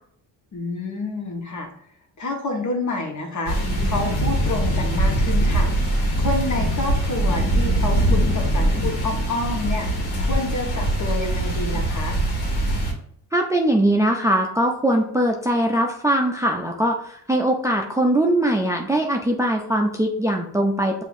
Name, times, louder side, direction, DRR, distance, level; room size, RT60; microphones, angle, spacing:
voice 1, 0.5-1.7 2.2-3.6 3.8-5.7 6.2-12.2, left 2 dB, 45° left, 2 dB, 1.3 m, -28 dB
sound 1, 3.5-12.9, right 1 dB, 75° left, 1.5 m, -22 dB
voice 2, 13.3-21.0, right 1 dB, 10° right, 1 dB, 0.5 m, -21 dB
6.8 x 2.8 x 2.6 m, 0.65 s
cardioid pair, 75°, 39 cm